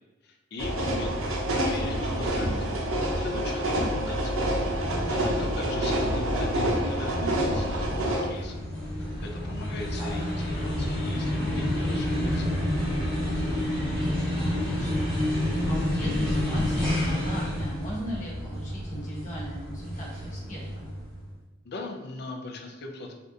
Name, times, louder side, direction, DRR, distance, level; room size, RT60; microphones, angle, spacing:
voice 1, 0.2-2.5 3.0-4.3 4.7-8.6 9.2-12.6 21.6-23.1, left 3 dB, 55° left, 3 dB, 0.4 m, -39 dB
sound 1, 0.6-8.3, right 1 dB, 80° right, 0.6 m, -27 dB
voice 2, 4.8-5.4 13.3-20.9, equal, 40° left, -6 dB, 1.0 m, -39 dB
sound 2, 6.7-21.2, left 1 dB, 5° left, 1.2 m, -29 dB
3.3 x 2.5 x 2.6 m, 1.1 s
head